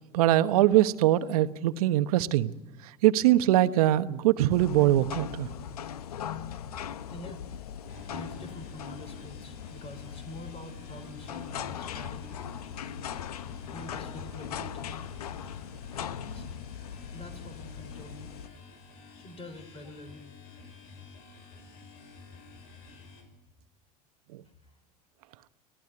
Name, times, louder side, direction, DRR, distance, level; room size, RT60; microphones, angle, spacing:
voice 1, 0.1-2.5 3.0-5.5, right 14 dB, 75° right, 12 dB, 1.1 m, -22 dB
sound 1, 4.5-18.5, left 8 dB, 90° left, 0.9 m, -40 dB
voice 2, 7.1-7.7 8.1-12.4 13.7-14.9 16.0-16.5 17.1-18.3 19.1-20.2 24.6-24.8, left 1 dB, 30° left, 7 dB, 3.7 m, -46 dB
sound 2, 7.9-23.2, left 4 dB, 75° left, 6.3 m, -50 dB
26.0 x 17.5 x 9.7 m, 1.1 s
hypercardioid pair, 90°, 19 cm